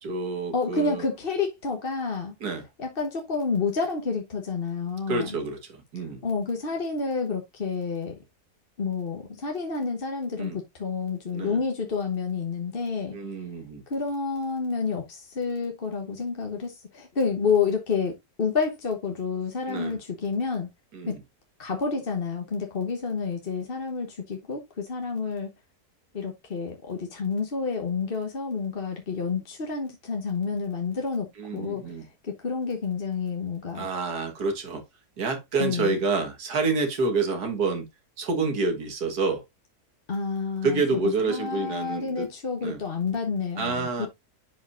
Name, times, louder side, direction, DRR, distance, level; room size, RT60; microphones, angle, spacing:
voice 1, 0.0-1.0 2.4-2.7 5.1-6.2 10.4-10.6 11.3-11.6 13.1-13.8 19.7-20.0 20.9-21.2 31.4-32.1 33.8-34.8 35.2-37.9 38.2-39.4 40.6-42.3 42.6-42.8 43.6-44.1, right 3 dB, 80° right, 2.1 m, -28 dB
voice 2, 0.5-2.3 2.8-5.3 6.2-8.2 8.8-13.2 13.9-20.7 21.1-21.2 21.6-25.5 26.1-33.9 35.6-35.9 40.1-44.1, left 5 dB, 40° left, 1.2 m, -29 dB
10.5 x 5.5 x 2.6 m
omnidirectional pair, 1.7 m